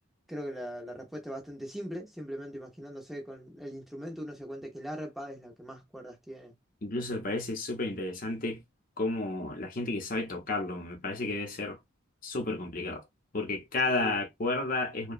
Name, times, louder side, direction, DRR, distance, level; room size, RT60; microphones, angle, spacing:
voice 1, 0.3-6.5 13.9-14.2, equal, ahead, 0.6 m, -40 dB
voice 2, 6.8-8.6 9.0-11.8 12.2-13.0 13.3-15.1, left 2 dB, 40° left, 0.7 m, -32 dB
2.8 x 2.1 x 2.4 m
head